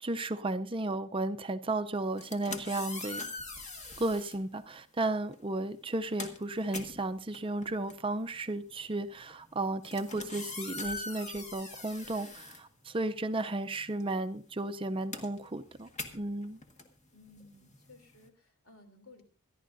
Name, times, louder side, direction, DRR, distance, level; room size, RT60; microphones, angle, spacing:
voice 1, 0.0-3.2 4.0-15.9 16.1-16.6, right 2 dB, 25° right, 0.5 m, -34 dB
sound 1, 2.1-4.4 5.3-5.5 5.8-13.3 13.6-18.3, left 3 dB, 30° left, 1.5 m, -43 dB
voice 2, 17.1-19.2, left 2 dB, 70° left, 3.1 m, -57 dB
25.5 x 11.0 x 2.6 m
head